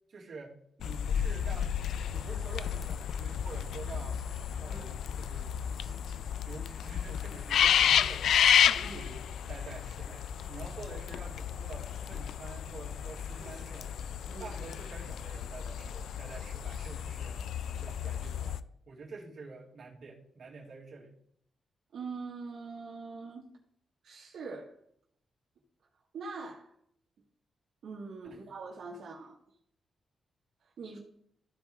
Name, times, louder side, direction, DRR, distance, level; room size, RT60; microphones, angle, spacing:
voice 1, 0.1-1.8 2.1-4.2 4.6-8.4 8.8-13.9 14.2-17.4 17.8-21.2 28.3-28.4, right 4 dB, 55° right, -3 dB, 2.5 m, -48 dB
sound 1, 0.8-18.6, left 9 dB, 90° left, 0.3 m, -31 dB
voice 2, 4.7-5.0 8.7-9.0 13.4-13.5 14.3-14.5 21.9-23.5 24.0-24.7 26.1-26.7 27.8-29.3 30.8-31.0, right 4 dB, 75° right, -5 dB, 1.7 m, -43 dB
14.0 x 4.7 x 3.6 m, 0.69 s
wide cardioid pair, 125°, 0 cm